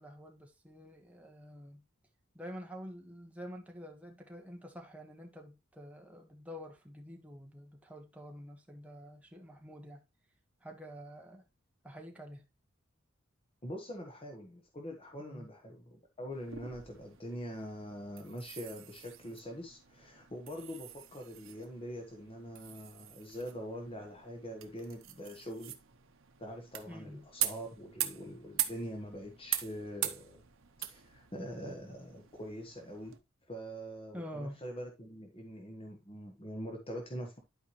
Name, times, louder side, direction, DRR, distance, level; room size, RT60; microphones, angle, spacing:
voice 1, 0.0-1.8 2.3-10.0 10.6-11.4 11.8-12.4 15.2-15.5 26.9-27.3 34.1-34.6, equal, 5° right, 1.4 m, -47 dB
voice 2, 13.6-25.7 26.4-30.4 30.9-33.2 33.5-37.4, equal, 25° left, 1.3 m, -44 dB
sound 1, 16.3-33.2, right 12 dB, 70° right, 1.0 m, -42 dB
11.5 x 4.8 x 3.1 m
head